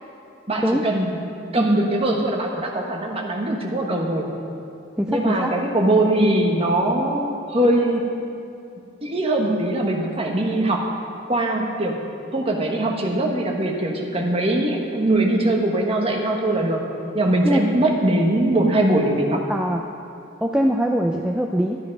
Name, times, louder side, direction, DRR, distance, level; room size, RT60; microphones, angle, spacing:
voice 1, 0.5-1.2 1.5-4.3 5.1-8.0 9.0-10.9 11.3-12.0 12.3-16.8 17.1-19.5, right 1 dB, 30° right, 0 dB, 1.3 m, -21 dB
voice 2, 5.0-5.5 17.4-17.6 19.5-19.8 20.4-21.8, equal, 5° right, 1 dB, 0.4 m, -22 dB
13.0 x 10.5 x 5.3 m, 2.6 s
head